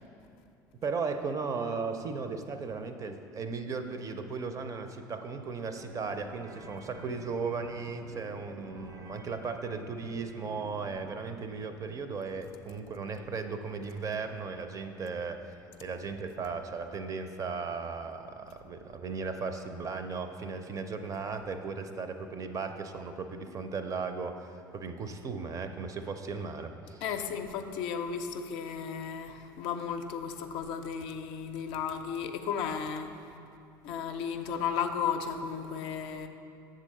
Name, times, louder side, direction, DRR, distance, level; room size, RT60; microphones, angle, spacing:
voice 1, 0.8-27.0, right 4 dB, 30° right, 8 dB, 0.5 m, -36 dB
sound 1, 5.7-12.8, right 1 dB, 90° right, 1.2 m, -50 dB
voice 2, 27.0-33.3 33.8-36.3, left 7 dB, 55° left, 6 dB, 0.5 m, -34 dB
7.2 x 3.8 x 6.4 m, 2.6 s
figure-of-eight pair, 65°, 11 cm